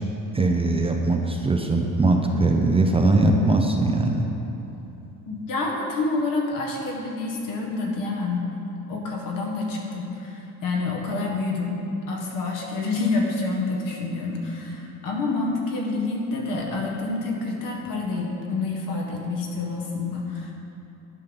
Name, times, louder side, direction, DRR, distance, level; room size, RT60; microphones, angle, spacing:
voice 1, 0.3-4.3, right 2 dB, 15° right, 2 dB, 0.5 m, -21 dB
voice 2, 5.3-8.5 8.9-11.8 12.1-20.5, left 3 dB, 65° left, 0 dB, 1.7 m, -28 dB
10.5 x 5.5 x 5.2 m, 3.0 s
cardioid pair, 135°, 35 cm